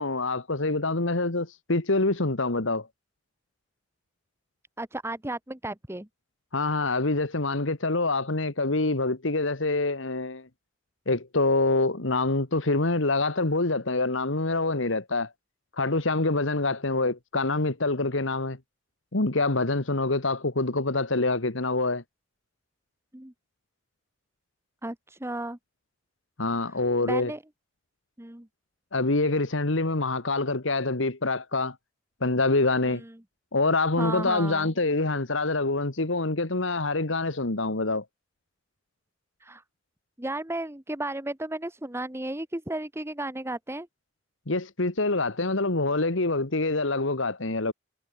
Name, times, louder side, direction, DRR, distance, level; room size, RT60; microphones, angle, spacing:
voice 1, 0.0-2.9 6.5-10.5 11.1-15.3 15.8-18.6 19.1-22.0 26.4-27.3 28.9-31.8 32.2-33.0 33.5-38.1 44.5-47.7, left 2 dB, 75° left, 1.9 m, -26 dB
voice 2, 4.8-6.1 23.1-23.3 24.8-25.6 27.0-27.4 28.2-28.5 32.8-33.1 34.0-34.7 39.4-39.6 40.2-43.9, right 1 dB, 15° right, 1.2 m, -34 dB
head